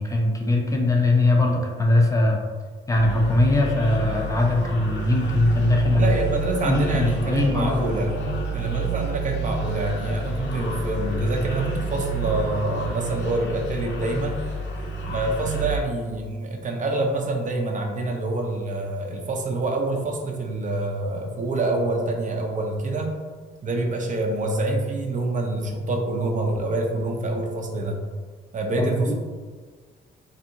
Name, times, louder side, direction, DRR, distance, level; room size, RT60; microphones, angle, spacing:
voice 1, 0.0-2.4 2.9-6.1 6.6-7.8 28.8-29.1, left 2 dB, 15° left, 1 dB, 0.5 m, -21 dB
sound 1, 2.9-15.8, right 2 dB, 70° left, 0.6 m, -30 dB
voice 2, 6.0-8.2 8.5-14.4 15.1-23.2 23.6-28.0 28.5-29.1, right 2 dB, 40° right, 1 dB, 0.5 m, -26 dB
2.6 x 2.4 x 2.7 m, 1.5 s
cardioid pair, 90°, 20 cm